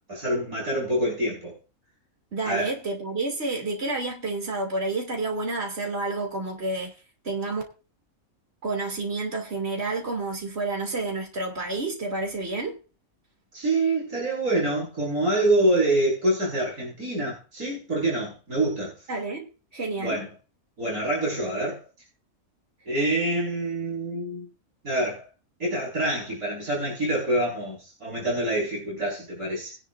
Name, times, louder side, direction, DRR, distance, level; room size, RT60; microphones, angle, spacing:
voice 1, 0.1-1.6 2.5-2.7 13.5-19.1 20.0-20.3 20.8-21.8 22.9-24.5 24.8-25.2 25.6-29.8, right 1 dB, 80° right, 5.8 m, -26 dB
voice 2, 2.3-6.9 7.2-7.6 8.6-12.8 19.1-20.2, right 2 dB, 45° right, 3.2 m, -29 dB
20.5 x 11.0 x 2.6 m
omnidirectional pair, 1.5 m